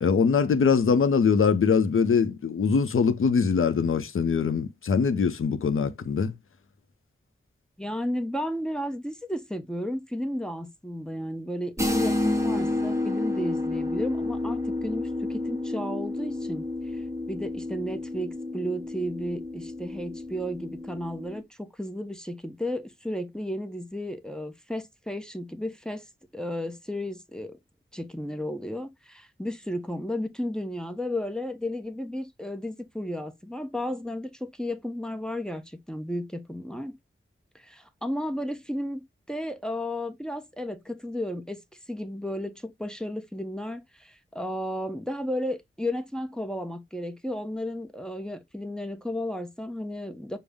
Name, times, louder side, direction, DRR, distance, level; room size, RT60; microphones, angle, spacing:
voice 1, 0.0-6.3, left 6 dB, 85° left, 0.5 m, -23 dB
voice 2, 7.8-16.6 16.9-26.0 26.3-27.6 27.9-37.0 37.5-39.0 39.3-41.6 41.9-50.4, left 1 dB, 5° left, 0.6 m, -33 dB
sound 1, 11.8-21.4, left 2 dB, 15° right, 1.0 m, -30 dB
5.3 x 2.0 x 3.4 m
wide cardioid pair, 85°, 21 cm